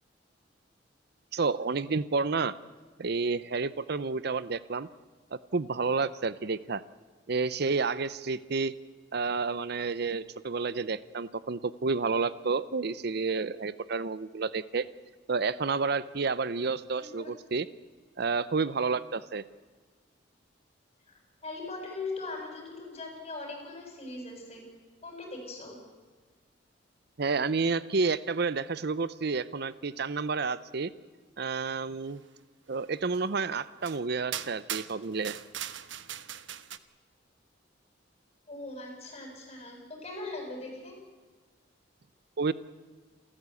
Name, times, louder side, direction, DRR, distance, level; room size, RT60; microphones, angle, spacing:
voice 1, 1.3-2.6 3.0-4.9 5.3-6.8 7.3-8.7 9.1-14.9 15.3-17.6 18.2-19.4 27.2-30.9 31.4-32.2 32.7-35.4 42.4-42.5, right 4 dB, 60° right, 17 dB, 0.7 m, -30 dB
voice 2, 17.0-17.3 21.1-24.6 25.0-25.7 38.5-40.9, left 3 dB, 35° left, 1 dB, 7.7 m, -40 dB
sound 1, 33.1-33.2 33.8-34.0 34.3-36.8, right 10 dB, 80° right, 1.1 m, -39 dB
28.5 x 14.0 x 8.4 m, 1.4 s
head